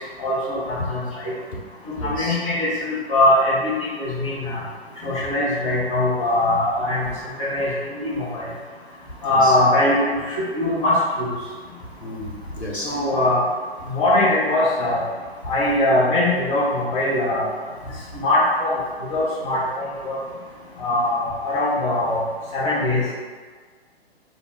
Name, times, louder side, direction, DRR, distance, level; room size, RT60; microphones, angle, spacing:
voice 1, 0.2-1.3 2.0-4.6 5.0-7.1 7.4-8.4 9.2-11.3 12.8-13.4 13.9-15.0 15.5-17.5 18.2-18.8 19.1-20.2 20.8-22.2 22.5-23.0, left 1 dB, 30° left, -8 dB, 1.2 m, -21 dB
voice 2, 2.0-2.4 9.2-9.5 12.0-12.9, left 1 dB, 85° left, -4 dB, 1.1 m, -31 dB
4.0 x 2.5 x 3.5 m, 1.6 s
figure-of-eight pair, 120°, 32 cm